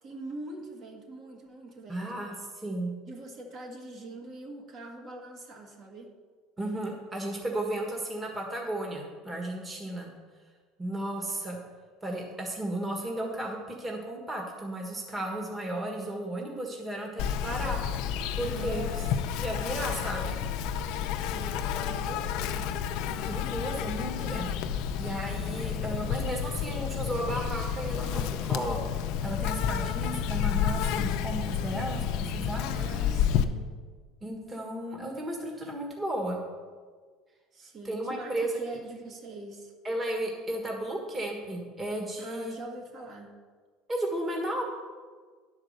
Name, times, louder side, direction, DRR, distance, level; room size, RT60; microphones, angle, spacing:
voice 1, 0.0-2.1 3.1-6.1 18.5-19.3 21.1-22.7 32.7-33.7 37.5-39.7 42.2-43.3, right 2 dB, 45° right, 1 dB, 1.6 m, -43 dB
voice 2, 1.9-2.9 6.6-10.1 10.8-11.6 12.0-17.8 18.3-18.8 19.4-20.3 23.3-24.5 24.9-28.8 29.2-32.6 34.2-36.4 37.8-38.5 39.8-42.6 43.9-44.6, right 1 dB, 20° right, 0 dB, 1.5 m, -34 dB
Insect, 17.2-33.4, left 8 dB, 65° left, 0.6 m, -30 dB
10.0 x 4.8 x 6.5 m, 1.6 s
supercardioid pair, 120°, 0 cm